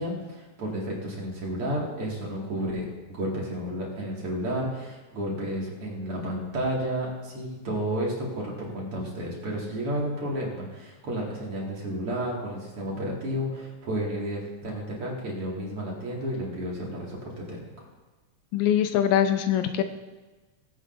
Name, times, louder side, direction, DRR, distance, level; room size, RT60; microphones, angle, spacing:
voice 1, 0.0-17.9, right 1 dB, 50° right, -3 dB, 2.9 m, -32 dB
voice 2, 18.5-19.8, left 10 dB, 80° left, 8 dB, 2.0 m, -23 dB
20.0 x 8.1 x 2.6 m, 1.2 s
omnidirectional pair, 3.4 m